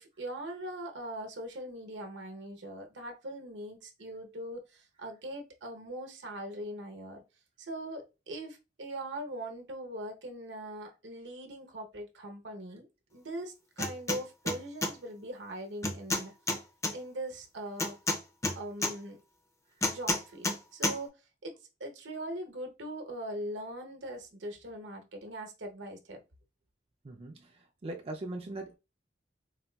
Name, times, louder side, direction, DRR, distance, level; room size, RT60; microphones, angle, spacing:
voice 1, 0.0-7.2 7.6-16.3 16.9-18.0 18.6-19.2 19.9-21.2 21.4-26.2, right 1 dB, 75° right, 0.8 m, -41 dB
sound 1, 13.8-14.2 14.5-14.9 15.8-16.9 17.8-18.9 19.8-20.6 20.8-21.0, left 2 dB, 15° left, 0.5 m, -30 dB
voice 2, 27.0-27.5 27.8-28.7, right 2 dB, 35° right, 0.4 m, -39 dB
4.0 x 2.3 x 2.2 m
head